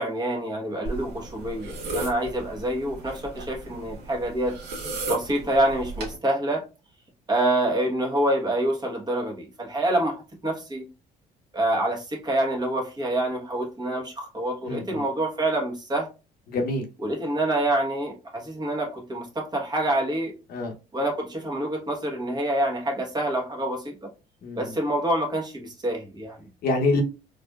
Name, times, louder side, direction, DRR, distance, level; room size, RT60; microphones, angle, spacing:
voice 1, 0.0-4.6 5.1-6.6 7.3-10.2 10.4-10.8 11.5-16.1 17.0-20.3 20.9-24.1 24.6-26.5, right 1 dB, 25° right, 1.2 m, -26 dB
sound 1, 0.8-6.1, right 2 dB, 75° right, 1.3 m, -35 dB
voice 2, 14.7-15.0 16.5-16.9 20.5-20.7 24.4-24.7 26.6-27.0, left 2 dB, 65° left, 0.9 m, -26 dB
4.0 x 2.8 x 2.3 m
cardioid pair, 110°, 17 cm